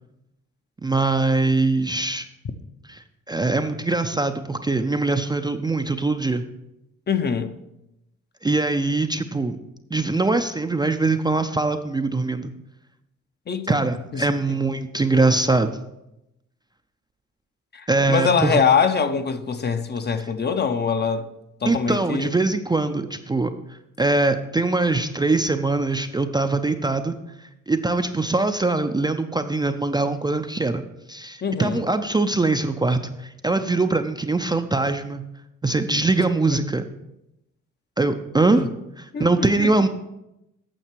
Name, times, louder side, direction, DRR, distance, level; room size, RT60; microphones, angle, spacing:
voice 1, 0.8-2.3 2.9-6.4 8.4-9.6 9.9-12.5 13.7-15.7 17.9-18.6 20.2-20.3 21.7-23.5 24.0-27.2 27.7-30.8 31.1-35.2 35.6-36.8 38.0-38.7 39.0-39.9, right 3 dB, 15° right, 0.4 m, -22 dB
voice 2, 7.1-7.5 13.5-13.8 14.1-14.2 17.7-21.3 21.6-22.3 31.4-31.8 38.5-38.7 39.1-39.7, left 6 dB, 35° left, 0.7 m, -23 dB
8.9 x 6.5 x 4.5 m
cardioid pair, 90°, 30 cm